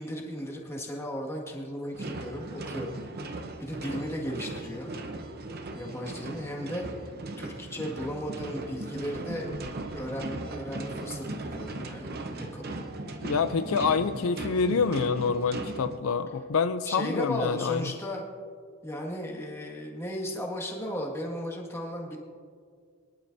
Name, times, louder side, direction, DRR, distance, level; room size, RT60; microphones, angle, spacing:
voice 1, 0.0-3.3 3.6-4.9 5.7-9.5 9.9-12.9 16.9-18.2 18.8-22.2, equal, 15° left, -1 dB, 1.8 m, -35 dB
sound 1, 1.9-16.0, right 2 dB, 50° right, 0.8 m, -38 dB
voice 2, 13.2-17.9, left 5 dB, 75° left, 11 dB, 0.5 m, -27 dB
23.0 x 11.5 x 2.7 m, 2.1 s
head